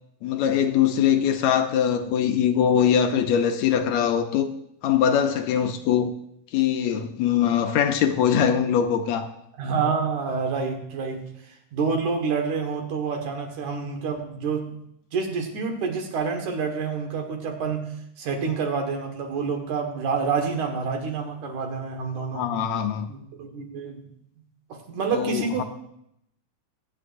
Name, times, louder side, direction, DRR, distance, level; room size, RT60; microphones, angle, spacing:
voice 1, 0.2-4.5 4.8-6.1 6.5-9.3 22.3-23.1 25.1-25.6, left 8 dB, 75° left, 7 dB, 1.9 m, -22 dB
voice 2, 9.6-14.8 15.1-17.9 18.2-22.5 23.1-24.0 24.7-25.6, right 5 dB, 80° right, 3 dB, 3.0 m, -28 dB
22.5 x 8.3 x 2.6 m, 0.75 s
omnidirectional pair, 3.4 m